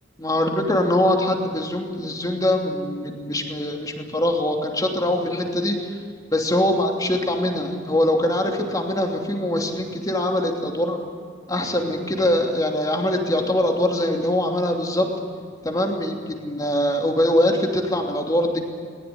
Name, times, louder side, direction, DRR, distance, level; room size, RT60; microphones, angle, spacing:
voice 1, 0.2-5.9 6.3-11.0 11.5-15.1 15.6-18.6, left 1 dB, 20° left, 2 dB, 2.9 m, -23 dB
20.0 x 20.0 x 9.7 m, 2.2 s
head